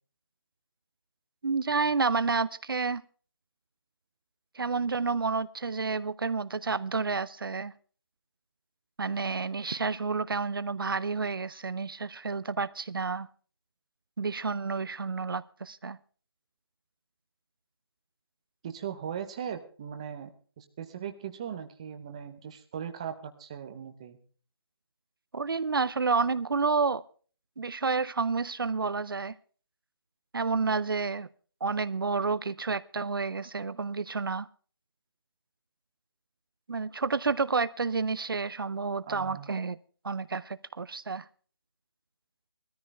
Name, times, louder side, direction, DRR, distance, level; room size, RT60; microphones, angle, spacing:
voice 1, 1.4-3.0 4.5-7.7 9.0-13.3 14.2-16.0 25.3-27.0 27.6-29.4 30.3-31.3 31.6-34.5 36.7-39.8 40.0-41.3, right 4 dB, 60° right, 0.6 m, -30 dB
voice 2, 18.6-20.3 20.6-24.2 39.0-39.5, right 8 dB, 15° right, 0.7 m, -39 dB
19.5 x 13.5 x 3.2 m
figure-of-eight pair, 170°, 13 cm